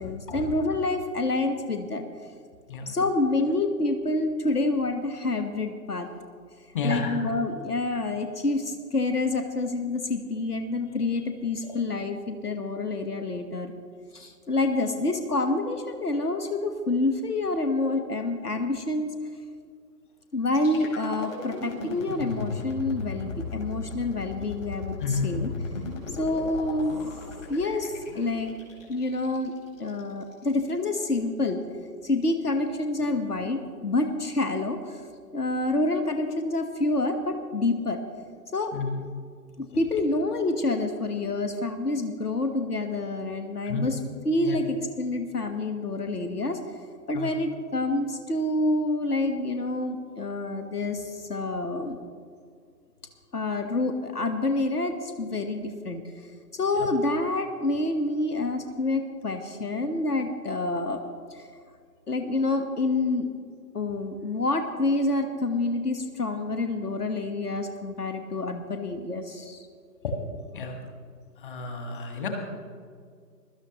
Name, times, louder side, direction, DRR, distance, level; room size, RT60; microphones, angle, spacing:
voice 1, 0.0-2.1 2.9-6.1 6.8-13.7 14.1-19.1 20.3-25.5 26.1-27.0 27.5-28.5 28.9-29.5 29.8-31.6 32.0-35.0 35.3-38.0 38.5-38.7 39.6-46.6 47.1-52.0 53.3-56.0 56.5-61.0 61.3-61.5 62.1-63.3 63.7-69.7, left 2 dB, 65° left, 7 dB, 1.3 m, -27 dB
voice 2, 6.7-7.2 25.0-25.4 38.7-39.0 43.7-43.9 44.4-44.6 47.1-47.3 70.0-70.1 70.5-70.7 71.4-72.3, left 4 dB, 30° left, 3 dB, 1.7 m, -30 dB
sound 1, 20.5-30.4, left 3 dB, 50° left, 4.0 m, -37 dB
22.0 x 12.5 x 3.0 m, 2.1 s
figure-of-eight pair, 145°, 49 cm